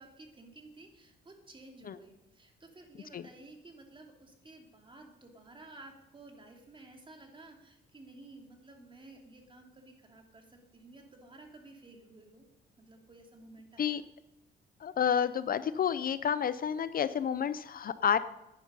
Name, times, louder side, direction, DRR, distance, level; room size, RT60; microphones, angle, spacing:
voice 1, 0.0-12.4 12.8-14.0, right 2 dB, 25° right, 3 dB, 2.7 m, -54 dB
voice 2, 14.8-18.2, left 8 dB, 45° left, 14 dB, 0.5 m, -30 dB
10.5 x 10.0 x 5.4 m, 0.92 s
cardioid pair, 90°, 20 cm